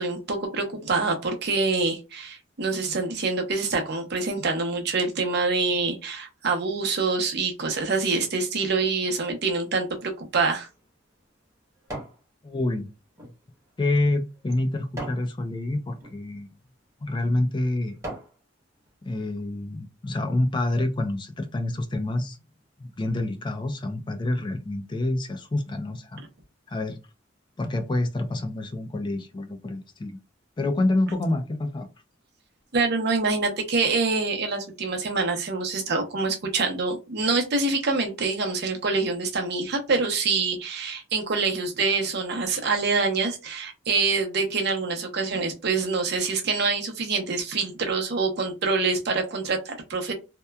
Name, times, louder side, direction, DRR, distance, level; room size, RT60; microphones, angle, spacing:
voice 1, 0.0-10.7 32.7-50.1, right 4 dB, 60° right, 0.7 m, -26 dB
sound 1, 10.6-12.2 12.7-15.3 15.9-16.2 16.8-17.0 17.5-18.4 18.9-19.0, right 1 dB, 15° right, 1.1 m, -41 dB
voice 2, 12.4-12.9 13.8-16.5 17.0-18.0 19.0-22.4 22.8-26.2 26.7-27.0 27.6-30.2 30.6-31.9, left 2 dB, 25° left, 0.4 m, -27 dB
2.8 x 2.2 x 2.2 m
head